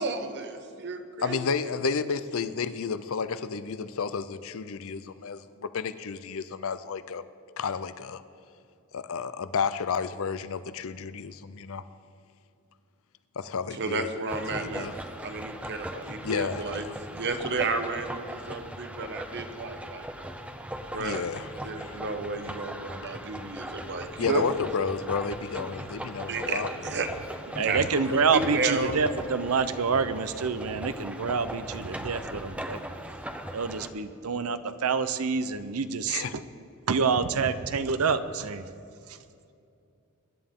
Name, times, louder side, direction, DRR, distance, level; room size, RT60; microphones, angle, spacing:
voice 1, 0.0-1.4 13.7-16.9 17.1-20.1 20.9-24.4 26.3-27.1 27.5-29.0, right 3 dB, 55° right, 7 dB, 1.1 m, -32 dB
voice 2, 1.2-7.2 7.6-8.2 8.9-11.8 13.4-14.1 14.5-14.9 16.2-16.9 20.9-22.0 24.2-26.7 27.6-28.2 36.1-36.3, left 5 dB, 65° left, 13 dB, 0.6 m, -32 dB
sound 1, 14.3-33.9, right 1 dB, 5° right, 0.7 m, -39 dB
voice 3, 27.5-32.8 33.5-36.2 36.9-38.6, right 5 dB, 75° right, 12 dB, 0.7 m, -27 dB
23.5 x 11.0 x 3.7 m, 2.5 s
head